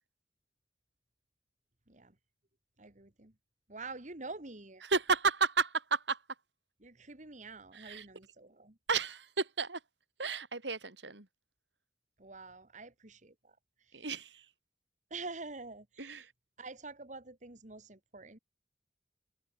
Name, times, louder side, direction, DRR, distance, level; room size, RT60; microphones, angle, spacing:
voice 1, 2.8-3.3 3.7-4.8 6.8-8.8 12.2-14.1 15.1-16.3 16.6-18.4, right 3 dB, 45° right, 2.1 m, -47 dB
voice 2, 4.8-6.2 7.7-8.1 8.9-9.8 10.2-11.3 13.9-14.5 16.0-16.3, right 4 dB, 80° right, 3.8 m, -32 dB
head